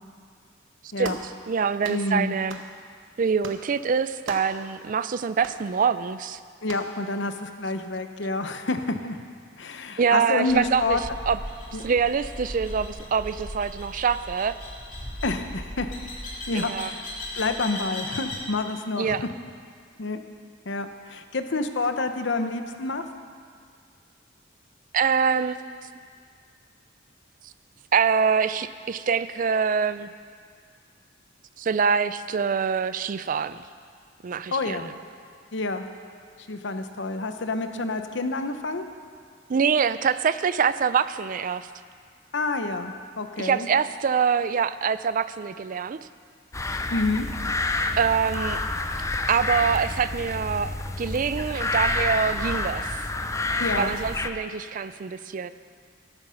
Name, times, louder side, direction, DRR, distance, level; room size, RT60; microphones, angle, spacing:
voice 1, 1.0-2.6 3.2-6.4 10.0-11.0 11.3-11.4 11.8-14.6 16.5-16.9 19.0-19.2 24.9-25.6 27.9-30.1 31.6-33.6 34.2-34.8 39.5-41.7 43.4-46.0 48.0-48.6 49.3-50.7 51.0-52.9 53.7-55.5, right 6 dB, 45° right, 14 dB, 0.4 m, -25 dB
sound 1, 1.0-1.3 1.8-2.1 2.5-2.7 3.4-3.7 4.3-4.6 5.4-5.6 6.7-6.9, right 4 dB, 75° right, 1.1 m, -39 dB
voice 2, 1.9-2.3 6.6-9.2 9.6-11.0 11.7-11.8 15.2-15.9 16.5-17.0 17.3-19.2 20.0-20.2 20.7-23.0 34.5-34.9 35.5-35.9 36.5-38.8 42.3-43.7 46.9-47.3 53.6-54.0, left 3 dB, 65° left, 8 dB, 0.8 m, -28 dB
sound 2, 10.5-18.5, left 1 dB, 40° left, 3.0 m, -37 dB
sound 3, 46.5-54.3, left 2 dB, 15° left, 0.5 m, -28 dB
13.0 x 11.5 x 5.7 m, 2.1 s
head